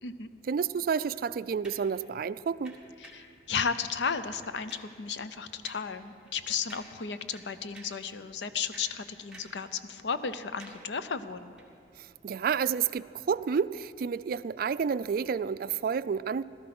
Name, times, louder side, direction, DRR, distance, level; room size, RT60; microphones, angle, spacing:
voice 1, 0.5-2.8 12.0-16.4, right 6 dB, 55° right, 16 dB, 0.3 m, -30 dB
sound 1, 1.6-1.9 2.6-3.3 3.9-4.1 4.4-5.0 5.6-5.9 6.2-6.4 6.7-7.1 7.3-8.1 8.5-9.7 9.9-10.9 11.5-11.7, right 2 dB, 5° right, 1.9 m, -52 dB
voice 2, 3.0-11.5, left 6 dB, 85° left, 12 dB, 0.6 m, -34 dB
16.0 x 13.0 x 6.0 m, 2.4 s
head